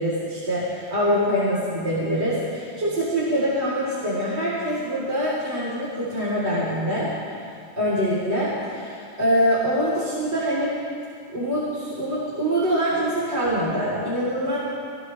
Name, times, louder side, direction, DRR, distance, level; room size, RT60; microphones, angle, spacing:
voice 1, 0.0-7.1 7.8-10.7 11.3-14.6, equal, 15° right, -9 dB, 3.2 m, -24 dB
23.0 x 19.0 x 3.3 m, 2.3 s
omnidirectional pair, 4.5 m